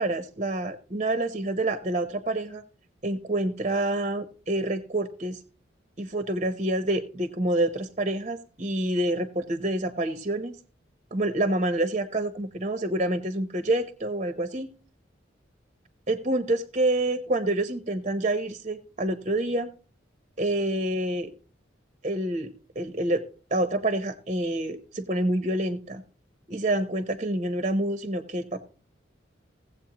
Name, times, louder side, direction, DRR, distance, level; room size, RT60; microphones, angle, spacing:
voice 1, 0.0-2.6 3.0-5.4 6.0-10.6 11.1-14.7 16.1-19.7 20.4-21.3 22.0-22.5 22.8-23.2 23.5-26.0 26.5-28.6, right 1 dB, 35° right, 9 dB, 0.7 m, -27 dB
16.5 x 7.8 x 2.9 m, 0.38 s
head